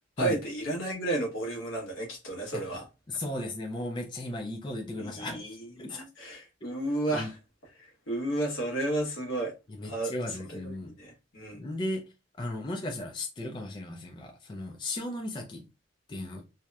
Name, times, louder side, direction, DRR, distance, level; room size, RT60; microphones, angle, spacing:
voice 1, 0.2-2.9 5.0-7.4 7.7-9.5 9.8-11.6, right 1 dB, 85° left, 1.0 m, -33 dB
voice 2, 3.1-5.4 5.8-6.1 7.1-7.3 9.7-10.9 11.5-12.0 12.4-15.6 16.1-16.4, left 1 dB, 25° left, 0.4 m, -35 dB
2.8 x 2.0 x 2.3 m
head